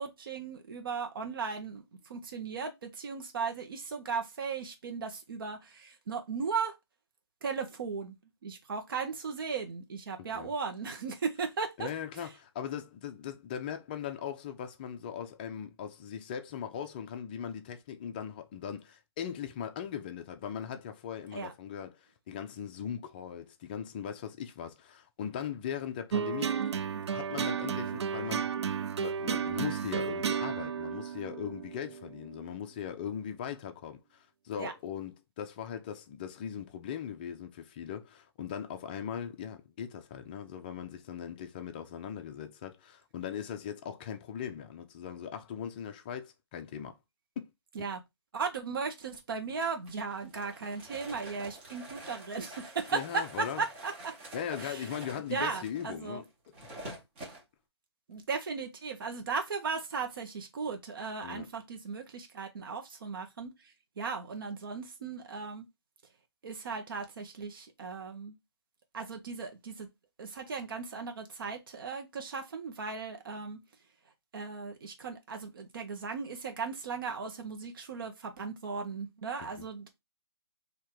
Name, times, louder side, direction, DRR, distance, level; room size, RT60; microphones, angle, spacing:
voice 1, 0.0-1.8 2.1-6.7 7.4-8.2 8.4-11.9 21.3-21.5 34.6-34.7 47.7-48.0 48.3-54.1 54.6-55.0 55.3-56.2 58.1-63.5 64.0-65.7 66.4-68.3 68.9-69.9 70.2-73.6 74.3-80.0, right 5 dB, 50° right, 1.2 m, -36 dB
voice 2, 11.8-26.6 27.1-28.6 29.0-47.0 47.4-47.5 52.9-53.6 54.3-56.2 56.9-57.0 61.2-61.5 79.5-79.7, left 8 dB, 20° left, 0.5 m, -39 dB
sound 1, 26.1-32.6, right 7 dB, 75° right, 0.4 m, -33 dB
sound 2, 49.9-57.4, right 1 dB, 20° right, 1.3 m, -47 dB
3.7 x 2.8 x 4.5 m
hypercardioid pair, 160°, 14 cm